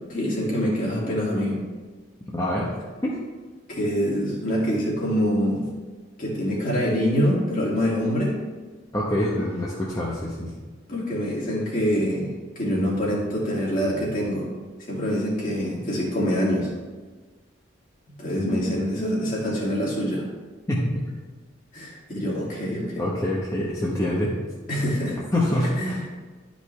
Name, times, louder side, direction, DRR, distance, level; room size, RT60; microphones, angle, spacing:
voice 1, 0.1-1.6 3.7-5.7 6.2-8.3 10.9-12.3 12.6-14.5 14.8-16.7 18.2-20.3 21.7-23.0 24.7-25.2 25.8-25.9, equal, 45° left, -5 dB, 2.5 m, -25 dB
voice 2, 2.3-2.7 3.0-3.2 8.9-10.5 18.4-18.7 20.7-21.0 23.0-24.3 25.3-26.0, left 1 dB, 15° left, -6 dB, 1.0 m, -25 dB
12.0 x 5.3 x 3.3 m, 1.3 s
head